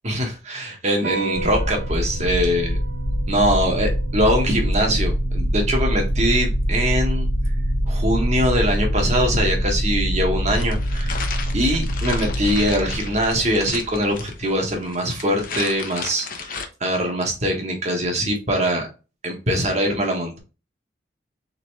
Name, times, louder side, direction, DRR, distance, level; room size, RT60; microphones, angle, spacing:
voice 1, 0.0-2.8 3.3-7.3 7.9-11.3 11.5-18.9 19.2-20.4, equal, 40° right, 2 dB, 1.5 m, -22 dB
sound 1, 1.0-7.8, right 3 dB, 55° right, 1.1 m, -37 dB
sound 2, 1.3-14.3, equal, 15° left, 1.2 m, -24 dB
sound 3, 10.5-16.7, left 5 dB, 50° left, 0.9 m, -34 dB
4.0 x 3.7 x 3.3 m, 0.31 s
head